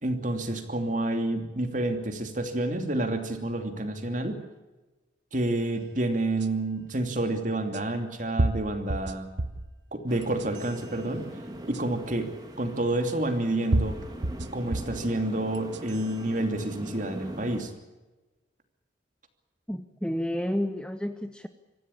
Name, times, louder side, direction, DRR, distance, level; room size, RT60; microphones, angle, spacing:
voice 1, 0.0-4.4 5.3-9.3 9.9-11.2 11.7-12.3 12.6-14.0 14.5-17.7, right 1 dB, 40° right, 6 dB, 2.8 m, -29 dB
sound 1, 6.4-6.5 7.7-7.8 8.4-9.7 10.2-10.8 11.7-11.8 13.1-13.2 13.7-15.0 15.5-16.1, right 1 dB, 65° right, 1.2 m, -29 dB
sound 2, 10.1-17.6, equal, 20° right, 2.7 m, -42 dB
voice 2, 19.7-21.5, equal, 5° left, 9 dB, 0.8 m, -30 dB
25.5 x 15.5 x 8.6 m, 1.1 s
head